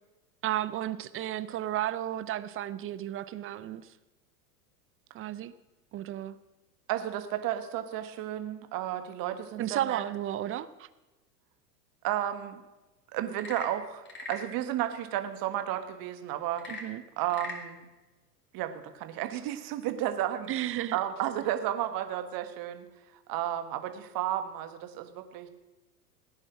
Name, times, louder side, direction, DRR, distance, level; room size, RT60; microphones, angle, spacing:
voice 1, 0.4-3.9 5.1-5.5 5.9-6.4 9.6-10.9 16.7-17.0 20.5-21.0, right 12 dB, 25° right, 16 dB, 0.6 m, -33 dB
voice 2, 6.9-10.0 12.0-12.6 13.1-16.7 17.2-17.8 18.5-20.5 20.9-22.8 23.3-25.5, right 12 dB, 45° right, 8 dB, 1.6 m, -32 dB
Frog / Percussion / Wood, 13.2-14.5 16.5-17.7, left 3 dB, 25° left, 3.2 m, -41 dB
17.0 x 9.8 x 6.2 m, 1.1 s
hypercardioid pair, 95°, 49 cm